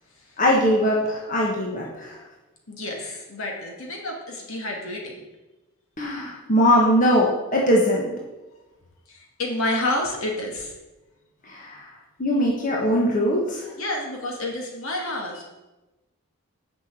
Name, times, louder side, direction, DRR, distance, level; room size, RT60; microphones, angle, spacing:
voice 1, 0.4-2.2 6.0-8.1 11.4-11.9 12.2-13.7, equal, 35° left, -3 dB, 1.5 m, -21 dB
voice 2, 2.7-5.1 9.1-10.7 13.8-15.4, left 1 dB, 65° left, 0 dB, 2.3 m, -29 dB
7.4 x 6.1 x 7.7 m, 1.1 s
head